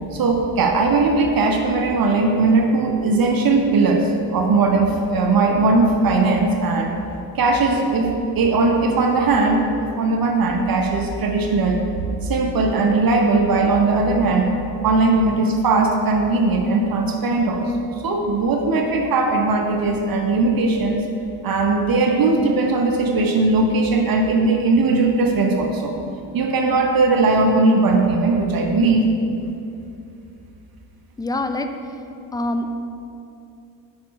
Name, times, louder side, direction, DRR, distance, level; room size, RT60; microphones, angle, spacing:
voice 1, 0.1-6.9 7.3-9.6 10.0-11.9 12.2-14.5 14.8-17.7 18.0-21.0 21.4-26.0 26.3-29.0, right 3 dB, 50° right, 2 dB, 0.9 m, -19 dB
voice 2, 31.2-31.7 32.3-32.8, left 1 dB, 10° left, 6 dB, 0.3 m, -25 dB
5.2 x 4.3 x 5.7 m, 2.7 s
supercardioid pair, 70°, 46 cm